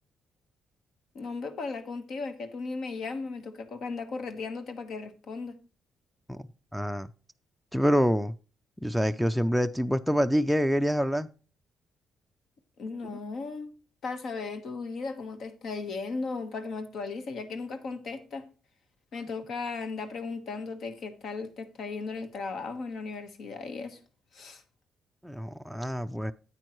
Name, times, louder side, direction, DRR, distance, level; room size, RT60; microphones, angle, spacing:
voice 1, 1.1-5.6 12.8-13.7 14.0-18.5 19.1-24.0 24.3-24.6, left 4 dB, 65° left, 1.3 m, -36 dB
voice 2, 6.7-7.1 7.7-8.3 8.8-11.3 25.2-26.3, equal, ahead, 0.4 m, -26 dB
9.1 x 8.8 x 3.1 m
cardioid pair, 90°, 0 cm